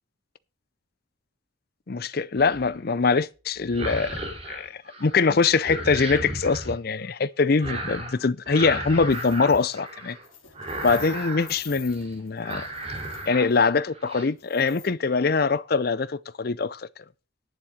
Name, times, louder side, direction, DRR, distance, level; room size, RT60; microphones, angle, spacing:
voice 1, 1.9-4.2 4.5-10.2 10.8-12.7 13.3-16.9, left 4 dB, 50° left, 0.5 m, -23 dB
sound 1, 2.4-2.8 3.6-5.2 5.4-6.8 7.6-8.2 8.5-10.2 10.5-11.6 11.9-12.1 12.4-13.5 13.8-14.3, right 1 dB, 30° right, 3.2 m, -34 dB
sound 2, 9.1-9.7 10.1-13.7 14.4-14.9, left 7 dB, 75° left, 3.8 m, -46 dB
11.0 x 7.3 x 6.4 m
head